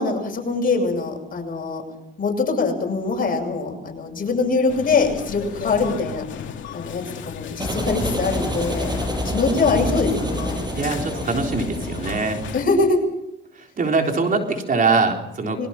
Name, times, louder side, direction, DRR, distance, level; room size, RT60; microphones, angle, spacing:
voice 1, 0.0-1.8 2.2-6.2 6.7-8.9 9.2-10.6 12.5-13.0 15.6-15.7, left 4 dB, 45° left, 2 dB, 7.8 m, -23 dB
sound 1, 4.7-12.6, left 8 dB, 70° left, 2.5 m, -35 dB
sound 2, 7.6-12.9, equal, 20° right, 6.7 m, -28 dB
voice 2, 10.8-12.4 13.6-15.7, right 4 dB, 45° right, 3 dB, 3.9 m, -22 dB
26.0 x 23.0 x 5.9 m, 0.83 s
cardioid pair, 90°, 20 cm